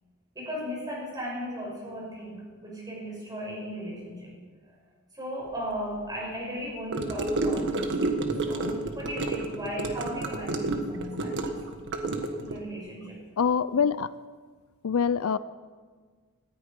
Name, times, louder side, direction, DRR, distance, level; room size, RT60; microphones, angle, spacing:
voice 1, 0.3-4.3 5.1-7.9 8.4-11.5 12.4-13.2, equal, 20° right, -3 dB, 6.1 m, -36 dB
Gurgling / Car passing by / Sink (filling or washing), 6.9-12.6, right 2 dB, 55° right, 1.5 m, -30 dB
voice 2, 13.4-14.1 14.8-15.4, left 6 dB, 70° left, 15 dB, 0.5 m, -24 dB
18.0 x 14.0 x 5.3 m, 1.5 s
head